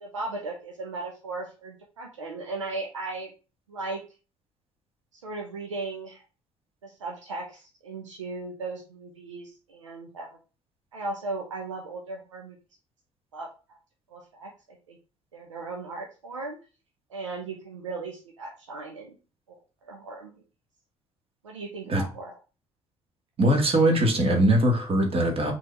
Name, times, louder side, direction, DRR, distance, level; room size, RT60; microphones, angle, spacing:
voice 1, 0.0-3.3 3.7-4.0 5.2-6.2 6.8-10.4 10.9-12.6 13.3-13.8 14.1-14.5 14.9-15.0 15.3-16.6 17.1-19.2 19.5-20.3 21.4-22.4, right 3 dB, 80° right, 0.9 m, -37 dB
voice 2, 23.4-25.5, right 1 dB, 40° right, 2.1 m, -21 dB
6.1 x 3.7 x 4.5 m
figure-of-eight pair, 50°, 16 cm